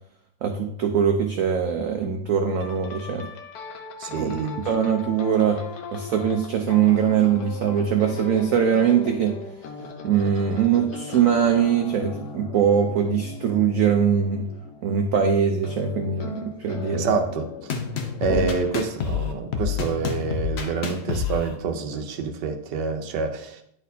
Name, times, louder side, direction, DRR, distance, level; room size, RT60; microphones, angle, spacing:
voice 1, 0.4-3.3 4.2-4.3 4.7-5.6 5.9-9.3 10.0-14.5 14.8-17.1 18.3-18.5, right 7 dB, 90° right, 4 dB, 0.7 m, -22 dB
sound 1, 2.6-21.0 21.9-22.2, left 5 dB, 65° left, 1.1 m, -39 dB
voice 2, 4.0-4.6 16.9-17.7 18.2-23.6, right 4 dB, 70° right, 6 dB, 1.3 m, -27 dB
sound 2, 17.7-21.5, left 6 dB, 90° left, 0.5 m, -28 dB
10.0 x 4.1 x 2.7 m, 0.69 s
omnidirectional pair, 2.1 m